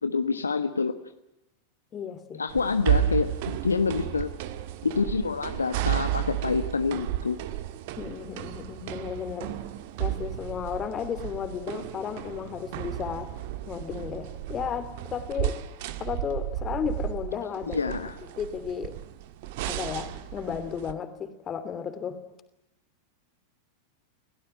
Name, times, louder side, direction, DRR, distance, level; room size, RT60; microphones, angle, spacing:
voice 1, 0.0-1.0 2.4-4.3 4.8-7.4 17.7-18.2, left 4 dB, 75° left, 9 dB, 1.2 m, -27 dB
voice 2, 1.9-2.4 8.0-9.5 10.0-13.3 13.7-15.6 16.0-17.9 18.4-18.9 19.7-22.2, left 7 dB, 25° left, 10 dB, 2.9 m, -34 dB
sound 1, 2.5-20.9, right 12 dB, 50° right, 1.5 m, -33 dB
29.0 x 17.0 x 8.9 m, 0.91 s
figure-of-eight pair, 90°, 0 cm